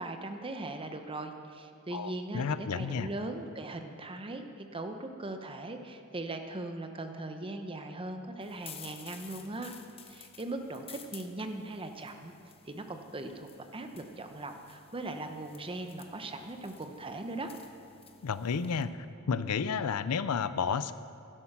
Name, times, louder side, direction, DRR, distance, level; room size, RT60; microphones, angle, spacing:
voice 1, 0.0-9.7 10.1-12.3 12.7-17.5, right 2 dB, 25° right, 6 dB, 0.8 m, -39 dB
voice 2, 1.9-3.1 18.2-18.9 19.3-20.9, left 6 dB, 80° left, 14 dB, 0.5 m, -31 dB
sound 1, 8.4-18.8, left 7 dB, 25° left, 0.7 m, -53 dB
11.5 x 11.0 x 6.0 m, 2.7 s
head